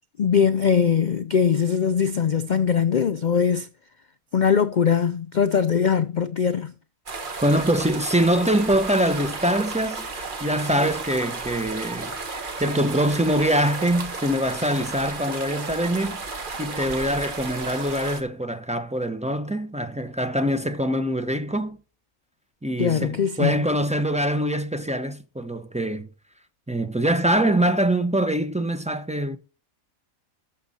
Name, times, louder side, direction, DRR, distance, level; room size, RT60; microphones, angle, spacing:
voice 1, 0.2-3.7 4.3-6.7 22.8-23.6, left 7 dB, 80° left, 0.4 m, -21 dB
sound 1, 7.1-18.2, right 3 dB, 40° right, 1.4 m, -33 dB
voice 2, 7.4-21.8 22.6-26.1 26.7-29.4, right 1 dB, 10° right, 0.5 m, -24 dB
13.0 x 6.4 x 4.2 m
omnidirectional pair, 1.5 m